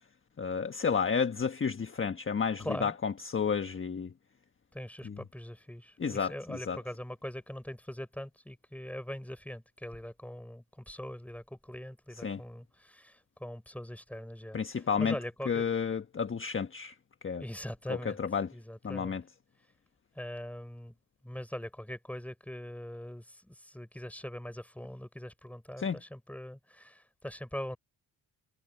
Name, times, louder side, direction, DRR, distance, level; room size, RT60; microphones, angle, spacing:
voice 1, 0.4-4.1 5.0-5.2 6.0-6.8 12.2-12.4 14.5-15.2 15.5-16.9 17.2-17.4 18.0-18.5 18.8-19.2 25.8-26.0, left 6 dB, 30° left, 1.4 m, -31 dB
voice 2, 2.6-3.0 4.7-15.6 17.4-18.2 18.5-19.2 20.1-20.9 21.2-27.8, left 1 dB, 5° left, 4.2 m, -42 dB
supercardioid pair, 70°, 41 cm